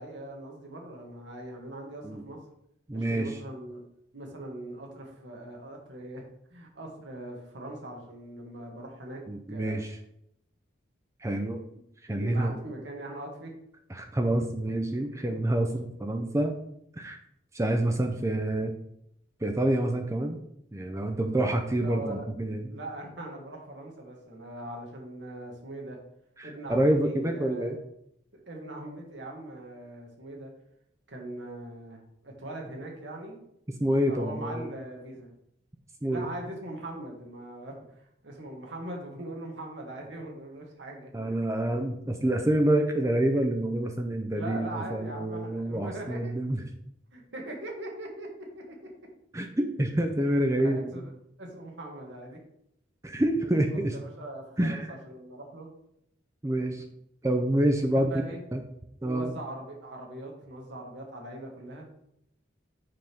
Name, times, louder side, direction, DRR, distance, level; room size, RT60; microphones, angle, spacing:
voice 1, 0.0-2.4 2.9-3.8 4.1-6.2 6.5-9.2 9.5-9.9 12.2-13.5 21.8-22.2 22.7-26.0 26.4-27.7 28.3-30.5 31.1-33.4 34.1-35.3 36.1-41.1 44.3-46.3 47.1-48.3 48.5-48.9 50.6-51.1 51.4-52.4 53.4-55.7 57.7-58.4 59.0-61.9, right 1 dB, 70° right, 0 dB, 1.7 m, -41 dB
voice 2, 2.9-3.3 9.3-10.0 11.2-11.6 12.0-12.5 13.9-16.5 16.9-17.2 17.5-18.7 19.4-20.4 20.7-22.7 26.4-27.8 33.8-34.7 36.0-36.3 41.1-46.6 49.3-50.9 53.0-53.9 54.6-54.9 56.4-56.9 57.2-58.1 58.5-58.6 59.0-59.3, right 1 dB, 15° right, 4 dB, 0.5 m, -27 dB
7.6 x 3.6 x 6.0 m, 0.75 s
head